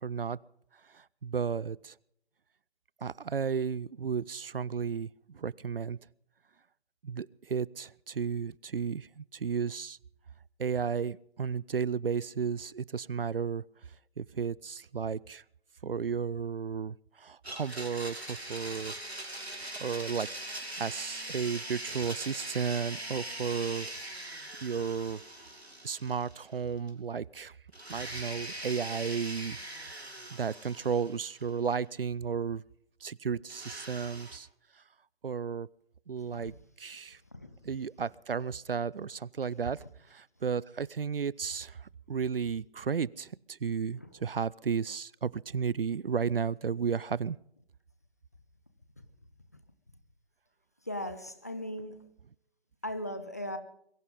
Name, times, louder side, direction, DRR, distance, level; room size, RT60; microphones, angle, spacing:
voice 1, 0.0-0.4 0.9-1.9 3.0-6.0 7.0-10.0 10.6-13.6 14.2-15.4 15.8-18.9 19.8-20.3 20.8-23.9 24.6-25.2 25.8-27.6 27.9-32.6 33.0-34.5 35.2-35.7 36.1-37.2 37.6-39.8 40.1-47.4, right 6 dB, 60° right, 0.5 m, -33 dB
Domestic sounds home sounds, 17.4-26.6 26.9-27.0 27.7-31.7 33.5-34.4, right 1 dB, 80° right, 3.6 m, -41 dB
voice 2, 50.9-52.0 52.8-53.6, left 1 dB, 15° left, 0.5 m, -38 dB
22.5 x 15.0 x 3.7 m
figure-of-eight pair, 145°, 31 cm